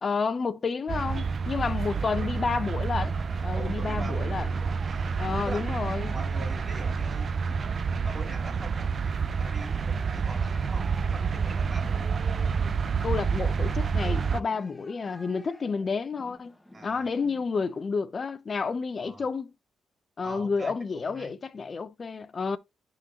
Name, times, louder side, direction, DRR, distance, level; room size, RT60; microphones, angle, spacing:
voice 1, 0.0-3.1 3.4-4.5 5.2-6.2 13.0-16.5 16.8-19.5 20.2-22.6, left 5 dB, 45° left, 0.7 m, -30 dB
sound 1, 0.9-14.4, right 5 dB, 50° right, 0.5 m, -28 dB
sound 2, 1.0-17.9, left 1 dB, 10° left, 1.6 m, -51 dB
voice 2, 1.9-2.3 3.5-4.5 4.9-5.7 6.1-7.3 8.0-12.0 16.7-17.1 19.0-19.3 20.2-21.3, right 2 dB, 30° right, 3.0 m, -43 dB
10.5 x 4.0 x 3.0 m
cardioid pair, 75°, 0 cm